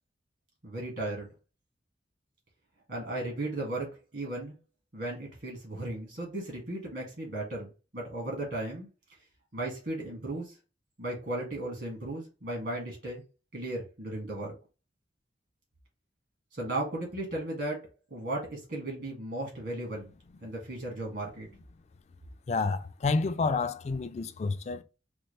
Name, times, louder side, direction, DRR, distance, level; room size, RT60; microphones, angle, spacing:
voice 1, 0.6-1.3 2.9-3.9 4.1-4.5 4.9-8.9 9.5-10.6 11.0-13.2 13.5-14.5 16.5-17.8 18.1-20.1 20.4-21.5, right 1 dB, 70° right, 1.7 m, -35 dB
voice 2, 22.5-24.8, left 4 dB, 35° left, 0.3 m, -29 dB
4.4 x 2.4 x 3.2 m
head